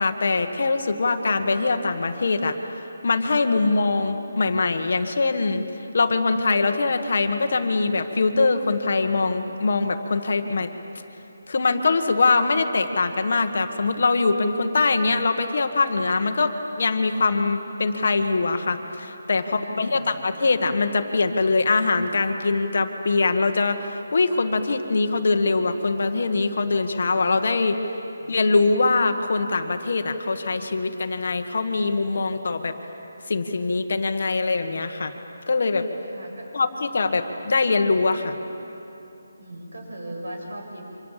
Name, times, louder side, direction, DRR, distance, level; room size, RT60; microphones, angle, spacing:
voice 1, 0.0-2.6 3.0-5.6 5.9-10.7 11.5-27.8 28.3-32.8 33.3-35.1 35.5-35.9 36.5-38.4, left 3 dB, 45° left, 7 dB, 1.5 m, -23 dB
voice 2, 19.4-20.1 28.2-28.5 36.1-36.5 39.4-40.8, right 1 dB, 65° right, 1 dB, 7.4 m, -38 dB
29.0 x 25.5 x 7.5 m, 3.0 s
hypercardioid pair, 180°, 0 cm